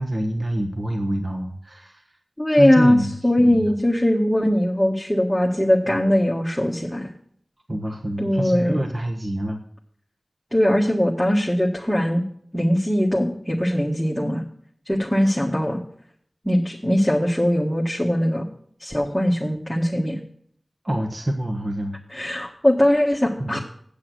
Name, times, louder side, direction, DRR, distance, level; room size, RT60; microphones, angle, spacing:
voice 1, 0.0-2.0 2.5-3.7 7.7-9.6 20.8-22.0 23.4-23.5, right 1 dB, 40° right, 3 dB, 1.3 m, -26 dB
voice 2, 2.4-3.0 3.2-7.1 8.2-8.8 10.5-12.2 12.5-14.4 14.8-15.8 16.4-18.5 18.8-20.2 22.1-23.6, left 1 dB, 5° left, -3 dB, 1.6 m, -20 dB
8.5 x 8.3 x 6.2 m, 0.63 s
wide cardioid pair, 70°, 0 cm